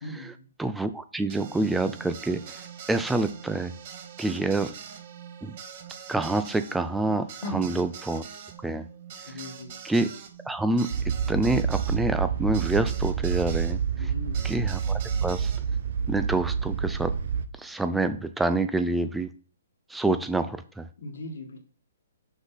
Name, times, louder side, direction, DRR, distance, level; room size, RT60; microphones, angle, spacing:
voice 1, 0.0-0.5 7.4-7.7 9.3-9.8 14.0-14.6 21.0-21.6, left 1 dB, 70° left, 3 dB, 1.5 m, -38 dB
voice 2, 0.6-2.4 2.9-3.7 4.2-4.7 5.4-5.5 6.1-8.2 8.6-8.8 9.8-10.1 10.5-10.9 11.3-14.1 14.4-15.5 16.1-17.1 17.6-19.3 19.9-20.9, right 2 dB, 5° right, 10 dB, 0.3 m, -27 dB
sound 1, 1.3-13.8 14.3-15.6, right 8 dB, 40° right, 1.2 m, -44 dB
sound 2, 10.9-17.5, right 7 dB, 60° right, 0.7 m, -28 dB
6.1 x 5.3 x 4.1 m, 0.41 s
hypercardioid pair, 155°, 0 cm